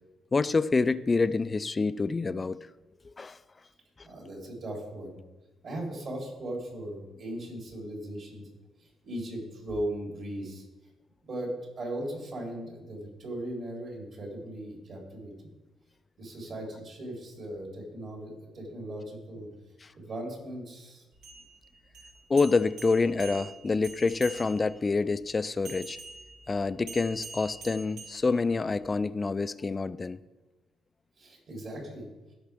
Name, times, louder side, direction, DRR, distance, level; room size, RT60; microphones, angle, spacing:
voice 1, 0.3-2.6 3.0-3.4 4.0-4.1 19.8-19.9 22.3-26.0 26.5-30.2, left 4 dB, 30° left, 0.4 m, -27 dB
voice 2, 4.0-5.2 5.6-8.5 9.0-10.6 11.2-11.5 11.8-15.3 16.2-19.5 19.9-21.0 31.2-32.1, right 1 dB, 55° right, 3.6 m, -38 dB
sound 1, 21.1-24.8 25.6-28.8, right 4 dB, 85° right, 2.6 m, -46 dB
16.0 x 5.7 x 3.5 m
cardioid pair, 90°, 0 cm